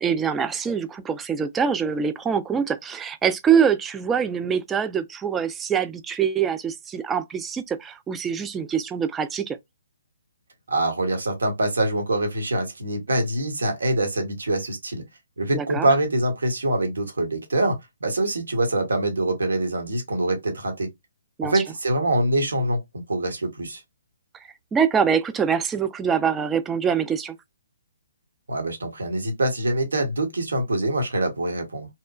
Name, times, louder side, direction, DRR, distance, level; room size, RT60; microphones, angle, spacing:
voice 1, 0.0-9.6 15.5-15.9 21.4-21.6 24.7-27.4, right 7 dB, 15° right, 0.3 m, -24 dB
voice 2, 10.7-15.0 15.4-20.9 21.5-22.8 23.1-23.8 28.5-31.9, right 1 dB, 75° right, 1.0 m, -24 dB
2.8 x 2.1 x 2.3 m
figure-of-eight pair, 130°, 0 cm